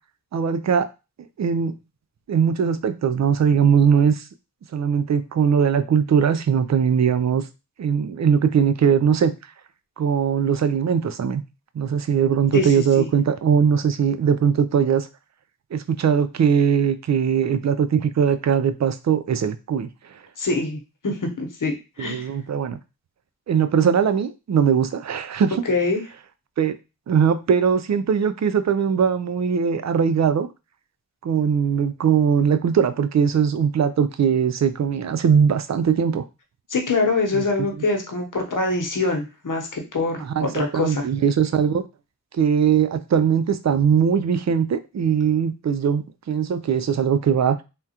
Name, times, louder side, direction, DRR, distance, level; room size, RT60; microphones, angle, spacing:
voice 1, 0.3-0.9 1.4-1.8 2.3-4.2 4.7-7.4 7.8-9.3 10.0-11.4 11.8-15.1 15.7-19.9 22.0-22.8 23.5-25.6 26.6-26.8 27.1-30.5 31.2-36.2 37.3-37.4 40.2-41.8 42.3-47.6, right 7 dB, 50° right, 12 dB, 0.4 m, -20 dB
voice 2, 12.5-13.1 20.4-22.3 25.7-26.0 36.7-41.0, left 3 dB, 60° left, 2 dB, 1.0 m, -24 dB
3.5 x 2.3 x 2.8 m, 0.28 s
wide cardioid pair, 55°, 35 cm